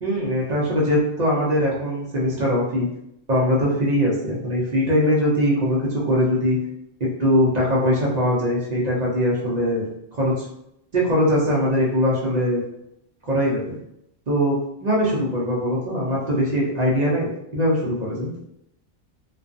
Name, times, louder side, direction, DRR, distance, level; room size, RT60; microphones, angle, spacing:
voice 1, 0.0-2.9 3.3-6.6 7.2-9.8 10.1-10.4 10.9-12.6 13.2-13.7 14.3-18.3, equal, 45° right, -5 dB, 0.6 m, -21 dB
2.4 x 2.3 x 2.5 m, 0.79 s
omnidirectional pair, 1.3 m